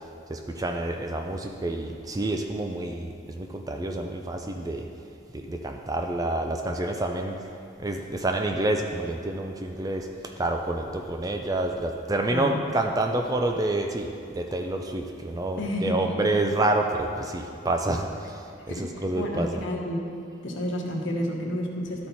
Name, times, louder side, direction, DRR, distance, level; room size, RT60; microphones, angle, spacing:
voice 1, 0.3-4.8 5.3-7.4 7.8-19.6, right 2 dB, 20° right, 4 dB, 0.4 m, -28 dB
voice 2, 12.3-12.6 15.6-16.1 18.7-18.8 19.1-20.0 20.4-22.1, equal, 70° left, -1 dB, 1.2 m, -30 dB
12.5 x 4.4 x 4.2 m, 2.7 s
head